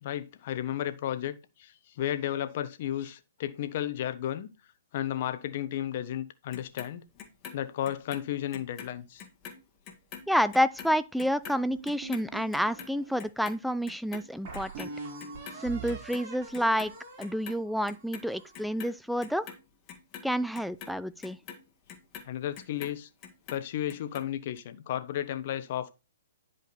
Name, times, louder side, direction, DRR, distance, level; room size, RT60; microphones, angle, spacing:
voice 1, 0.0-4.5 4.9-7.0 7.5-9.2 22.2-23.1 23.5-25.9, left 11 dB, 50° left, 1.0 m, -33 dB
Clock, 6.5-8.9 9.2-15.6 15.9-16.9 17.2-18.2 18.5-23.0 23.2-24.2 24.6-24.7, left 7 dB, 30° left, 1.8 m, -45 dB
voice 2, 10.3-14.9 15.6-16.9 17.2-19.5 20.2-21.4, equal, ahead, 0.5 m, -29 dB
sound 1, 11.7-13.3 13.8-13.9 14.4-18.6, right 4 dB, 45° right, 4.3 m, -43 dB
10.5 x 5.2 x 4.2 m
hypercardioid pair, 125°, 0 cm